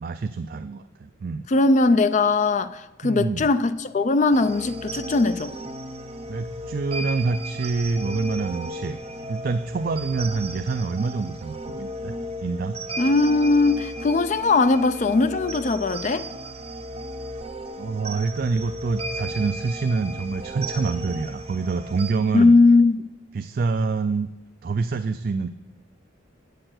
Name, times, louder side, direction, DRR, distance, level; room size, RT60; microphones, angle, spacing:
voice 1, 0.0-1.4 3.0-3.5 6.3-9.0 9.3-12.1 12.4-12.8 17.8-22.5 23.3-24.3 24.6-25.5, right 4 dB, 45° right, 0.3 m, -26 dB
voice 2, 1.5-5.5 13.0-16.3 22.3-23.0, left 3 dB, 35° left, 0.4 m, -19 dB
sound 1, 4.3-22.1, right 1 dB, 30° right, 0.9 m, -35 dB
8.8 x 6.6 x 7.7 m
head